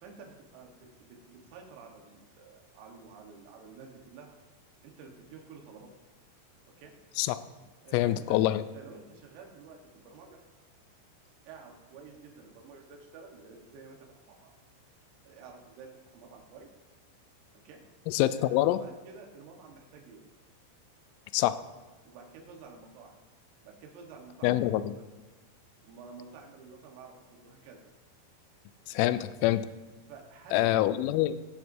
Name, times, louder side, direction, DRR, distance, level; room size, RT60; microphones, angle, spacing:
voice 1, 0.0-4.4 4.8-5.9 6.8-6.9 7.8-10.4 11.5-14.0 14.3-14.5 15.3-16.7 17.7-17.8 18.3-20.2 22.1-23.2 23.6-25.0 25.8-27.8 29.0-29.2 30.1-30.7, right 5 dB, 90° right, 1 dB, 4.1 m, -50 dB
voice 2, 7.9-8.6 18.1-18.8 21.3-21.6 24.4-24.9 28.9-29.7 30.5-31.4, left 14 dB, 85° left, 13 dB, 3.1 m, -25 dB
20.5 x 8.0 x 2.7 m, 1.2 s
omnidirectional pair, 5.9 m